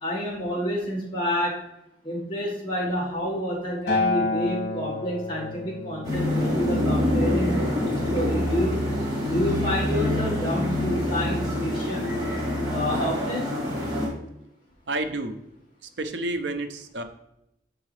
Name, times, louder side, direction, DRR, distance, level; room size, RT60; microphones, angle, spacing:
voice 1, 0.0-1.5 2.0-7.6 7.9-8.8 9.3-12.1 12.7-13.5, equal, 30° left, -6 dB, 1.6 m, -29 dB
Acoustic guitar, 3.9-8.2 9.0-9.1, left 3 dB, 70° left, 1.7 m, -30 dB
sound 1, 6.0-14.1, left 1 dB, 25° right, 2.0 m, -26 dB
voice 2, 14.9-15.4 16.0-17.0, right 2 dB, 85° right, 8 dB, 0.6 m, -29 dB
6.4 x 4.7 x 3.2 m, 0.82 s
head